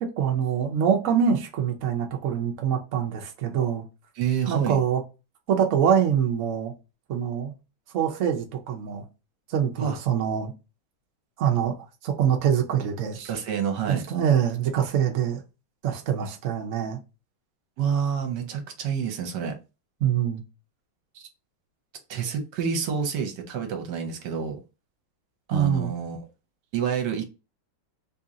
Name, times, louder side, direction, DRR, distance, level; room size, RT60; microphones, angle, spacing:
voice 1, 0.0-3.8 4.5-5.0 5.5-6.7 7.1-7.5 7.9-9.0 9.5-10.5 11.4-11.7 12.0-13.3 13.9-15.4 15.8-17.0 20.0-20.4 25.5-25.9, right 8 dB, 80° right, 0.7 m, -24 dB
voice 2, 4.2-4.8 9.8-10.0 13.2-14.0 17.8-19.5 22.1-24.6 25.5-26.2 26.7-27.2, right 7 dB, 65° right, 1.2 m, -28 dB
3.1 x 2.8 x 3.7 m
omnidirectional pair, 2.3 m